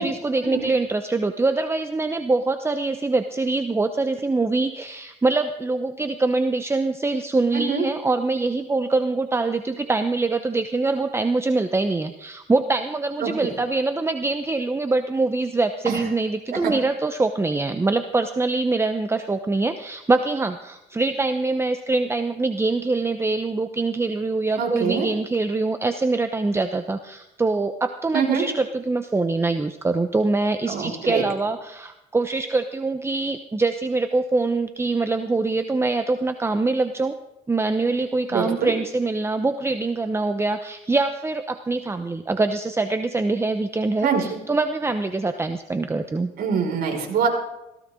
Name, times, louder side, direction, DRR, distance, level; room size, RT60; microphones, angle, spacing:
voice 1, 0.0-37.1 37.5-46.3, right 3 dB, 15° right, 8 dB, 0.9 m, -24 dB
voice 2, 13.2-13.5 15.9-16.0 16.5-16.7 24.6-25.1 28.1-28.4 30.7-31.2 38.3-38.7 44.0-44.4 46.4-47.3, right 6 dB, 65° right, 0 dB, 5.6 m, -24 dB
18.0 x 15.5 x 3.8 m, 0.90 s
cardioid pair, 110°, 17 cm